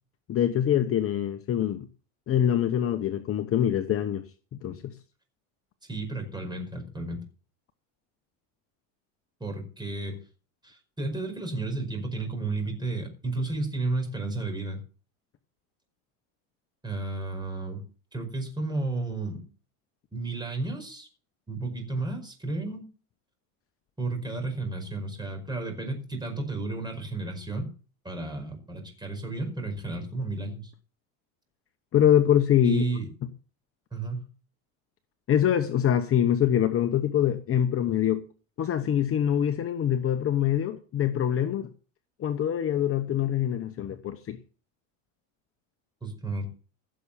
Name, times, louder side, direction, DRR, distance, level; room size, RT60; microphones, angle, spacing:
voice 1, 0.3-1.9 2.3-4.2 4.5-4.9 31.9-32.8 35.3-38.2 38.6-41.7 42.2-44.4, left 10 dB, 35° left, 1.1 m, -24 dB
voice 2, 5.9-7.2 9.4-10.2 10.6-14.8 16.8-17.8 18.1-19.4 20.1-21.1 21.5-22.9 24.0-27.7 28.0-30.7 32.6-33.1 33.9-34.2 46.0-46.5, right 2 dB, 10° right, 5.2 m, -32 dB
16.5 x 7.1 x 6.8 m
supercardioid pair, 130°, 41 cm